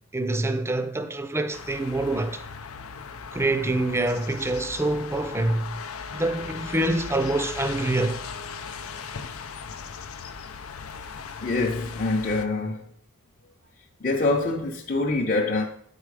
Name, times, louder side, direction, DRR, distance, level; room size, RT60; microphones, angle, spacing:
voice 1, 0.1-2.4 3.3-5.7 6.1-8.2, right 2 dB, 10° right, 0.5 m, -26 dB
sound 1, 1.5-12.5, left 6 dB, 90° left, 0.6 m, -38 dB
Brass instrument, 5.3-9.7, left 2 dB, 70° left, 1.0 m, -46 dB
voice 2, 11.4-12.9 14.0-15.6, left 2 dB, 40° left, 0.8 m, -25 dB
8.4 x 4.7 x 4.8 m
head